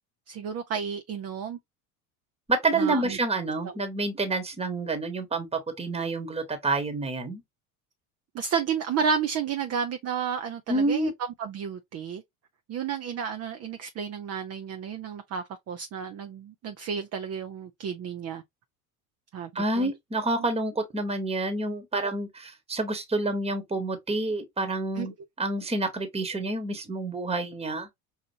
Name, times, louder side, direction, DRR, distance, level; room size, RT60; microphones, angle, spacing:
voice 1, 0.3-1.6 2.7-3.2 8.3-11.1 11.4-12.2 12.7-18.4 19.3-19.9 25.0-25.1, right 7 dB, 35° right, 0.6 m, -31 dB
voice 2, 2.5-7.4 10.7-11.1 19.5-27.9, right 2 dB, 15° right, 1.2 m, -28 dB
5.5 x 2.5 x 2.7 m
hypercardioid pair, 75°, 44 cm